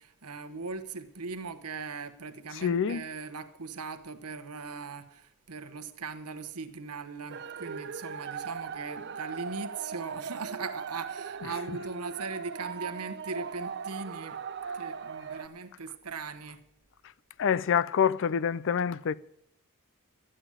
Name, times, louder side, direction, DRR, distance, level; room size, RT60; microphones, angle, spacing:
voice 1, 0.0-14.4 14.7-16.6, right 4 dB, 90° right, 1.1 m, -39 dB
voice 2, 2.6-3.0 17.4-19.1, left 7 dB, 60° left, 0.4 m, -26 dB
sound 1, 7.3-15.5, right 6 dB, 50° right, 0.7 m, -39 dB
12.5 x 8.9 x 8.9 m
head